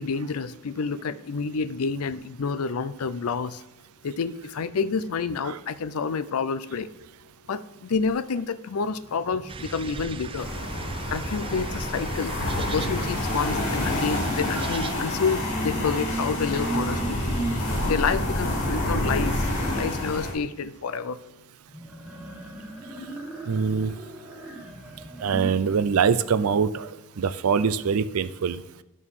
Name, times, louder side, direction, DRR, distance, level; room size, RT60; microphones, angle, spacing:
voice 1, 0.0-3.6 4.0-6.9 7.5-10.5 11.1-17.2 17.9-21.2, left 5 dB, 80° left, 15 dB, 0.5 m, -29 dB
sound 1, 8.8-10.7 11.8-18.6 21.7-25.5, right 2 dB, 5° right, 1.6 m, -38 dB
sound 2, 9.5-14.9, right 4 dB, 25° right, 0.4 m, -38 dB
sound 3, 10.4-20.3, left 1 dB, 55° left, 3.1 m, -28 dB
voice 2, 23.5-23.9 25.2-28.6, right 6 dB, 80° right, 15 dB, 0.5 m, -24 dB
11.0 x 6.3 x 3.7 m, 0.99 s
head